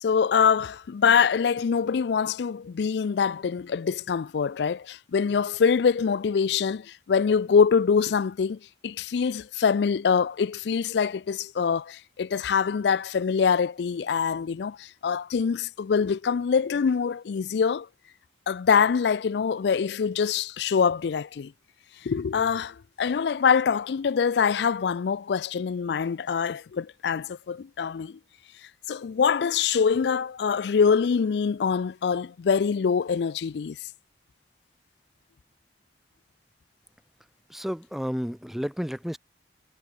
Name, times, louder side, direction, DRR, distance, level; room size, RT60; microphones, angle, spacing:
voice 1, 0.0-17.9 18.5-21.5 22.0-28.2 28.9-33.8, left 6 dB, 70° left, 0.4 m, -24 dB
voice 2, 37.5-39.2, equal, ahead, 0.6 m, -31 dB
head